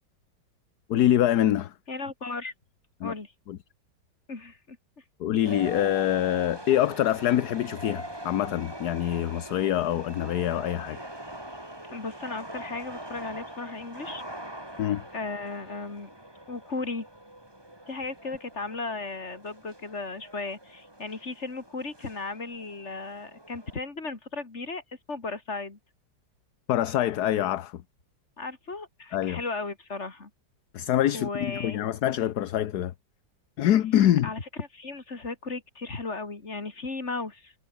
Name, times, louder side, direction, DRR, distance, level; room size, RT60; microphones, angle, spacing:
voice 1, 0.9-1.7 3.0-3.1 3.5-3.6 5.2-11.0 14.8-15.0 26.7-27.8 29.1-29.4 30.7-32.9 33.6-34.3, left 12 dB, 60° left, 1.3 m, -25 dB
voice 2, 1.9-2.5 3.0-3.3 4.3-4.8 11.9-14.2 15.1-16.1 16.5-17.1 17.9-24.8 25.1-25.8 28.4-30.3 31.1-31.8 34.2-37.5, left 3 dB, 35° left, 3.3 m, -35 dB
sound 1, 5.4-23.8, right 1 dB, 10° right, 4.0 m, -43 dB
omnidirectional pair, 2.1 m